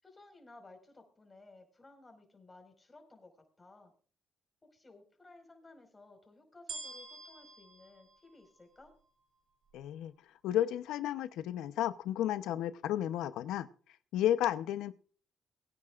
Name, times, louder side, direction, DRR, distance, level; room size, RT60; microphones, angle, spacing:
voice 1, 0.0-3.9 4.6-8.9, left 2 dB, 25° left, 4 dB, 5.1 m, -57 dB
sound 1, 6.7-9.1 9.7-9.8, right 4 dB, 65° right, 6.3 m, -47 dB
voice 2, 9.7-10.1 10.4-13.7 14.1-14.9, left 11 dB, 90° left, 13 dB, 0.8 m, -32 dB
22.5 x 9.8 x 2.5 m, 0.43 s
cardioid pair, 90°, 0 cm